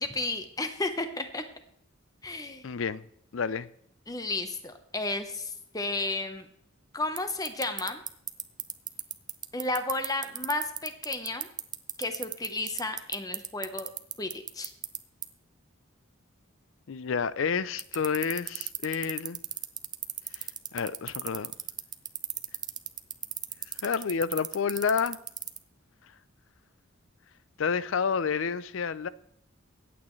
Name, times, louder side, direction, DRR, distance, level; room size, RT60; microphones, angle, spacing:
voice 1, 0.1-1.4 2.2-2.7 4.1-6.5 6.9-8.0 9.5-11.5 12.0-13.9 14.2-14.7, left 2 dB, 20° left, 0.9 m, -33 dB
voice 2, 2.6-3.0 3.3-3.7 16.9-19.4 20.3-20.5 20.7-21.5 23.8-25.2 27.6-29.1, left 6 dB, 75° left, 0.5 m, -29 dB
sound 1, 7.2-15.0 15.2-15.3 17.8-25.6, right 9 dB, 20° right, 0.5 m, -32 dB
23.0 x 8.6 x 3.2 m
head